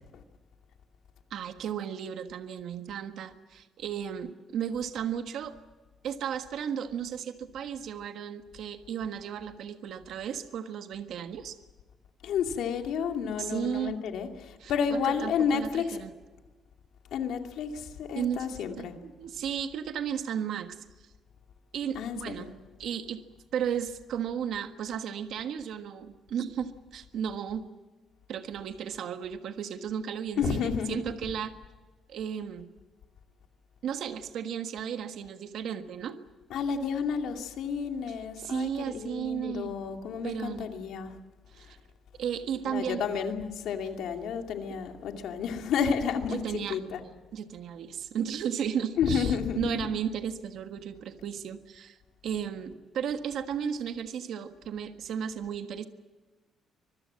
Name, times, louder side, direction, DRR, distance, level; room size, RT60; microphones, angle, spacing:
voice 1, 1.3-5.5 6.0-11.6 13.4-14.0 14.6-16.1 18.1-20.8 21.7-22.5 22.8-23.2 23.5-27.7 28.3-31.5 32.1-32.7 33.8-36.2 38.4-39.7 40.2-40.7 41.5-41.8 42.2-43.0 44.7-44.8 46.3-46.8 47.3-52.0 52.2-55.9, right 8 dB, 65° right, 8 dB, 1.4 m, -34 dB
voice 2, 12.2-16.0 17.1-18.9 21.9-22.5 30.4-31.0 36.5-41.1 42.6-46.4 46.7-47.0 49.0-49.9, left 6 dB, 70° left, 4 dB, 2.5 m, -31 dB
25.0 x 21.5 x 7.5 m, 1.3 s
cardioid pair, 160°, 0 cm